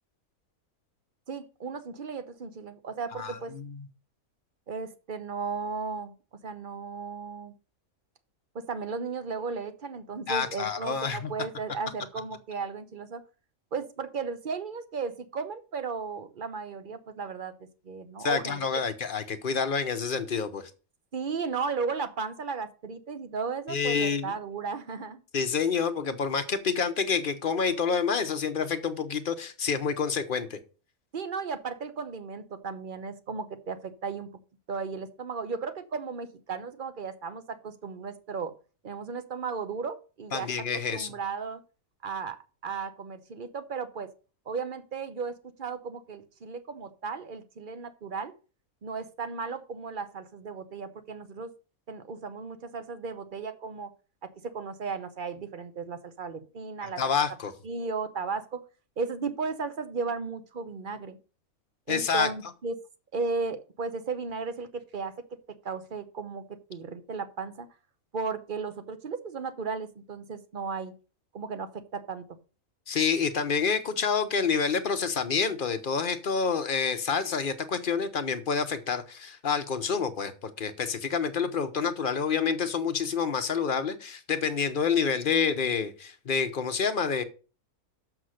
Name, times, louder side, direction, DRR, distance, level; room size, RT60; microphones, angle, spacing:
voice 1, 1.3-3.5 4.7-6.1 6.4-7.5 8.5-13.2 13.7-17.5 17.8-18.6 21.1-25.2 31.1-34.3 34.7-38.5 38.8-40.5 40.9-41.6 42.0-44.1 44.5-48.3 48.8-51.5 51.9-53.9 54.2-57.1 57.6-58.6 59.0-61.2 61.9-62.8 63.1-65.1 65.6-66.4 66.7-67.7 68.1-70.9 71.3-72.2, right 5 dB, 45° right, 0.9 m, -35 dB
voice 2, 3.1-3.8 10.3-11.3 18.2-20.7 23.7-24.3 25.3-30.6 40.3-41.1 56.8-57.5 61.9-62.3 72.9-87.2, left 6 dB, 45° left, 0.9 m, -28 dB
6.7 x 6.1 x 6.4 m
omnidirectional pair, 1.5 m